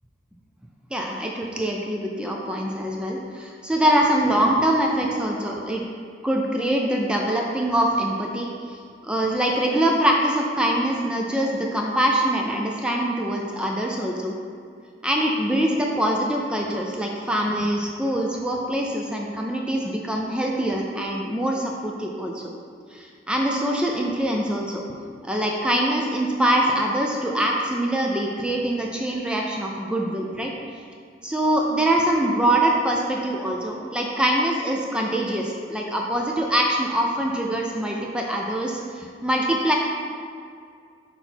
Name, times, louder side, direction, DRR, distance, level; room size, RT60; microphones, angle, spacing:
voice 1, 0.9-5.8 6.2-8.8 9.0-14.3 15.0-22.4 22.9-24.8 25.2-30.5 31.2-39.7, right 1 dB, 5° right, -1 dB, 0.4 m, -24 dB
5.9 x 4.0 x 4.3 m, 2.3 s
head